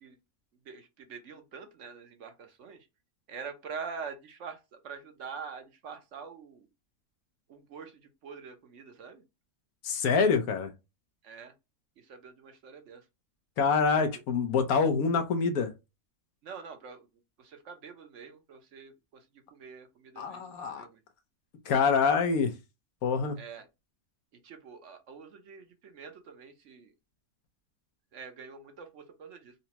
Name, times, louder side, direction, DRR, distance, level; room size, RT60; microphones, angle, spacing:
voice 1, 0.6-2.9 3.3-6.7 7.5-9.2 11.2-11.5 12.0-13.0 13.8-14.2 16.4-17.1 17.4-19.2 19.5-21.0 23.4-23.7 24.4-26.9 28.1-29.5, right 5 dB, 65° right, 1.0 m, -45 dB
voice 2, 9.8-10.7 13.6-15.7 20.2-20.8 21.6-22.5 23.0-23.4, left 5 dB, 85° left, 1.3 m, -26 dB
4.0 x 2.2 x 2.8 m
omnidirectional pair, 1.5 m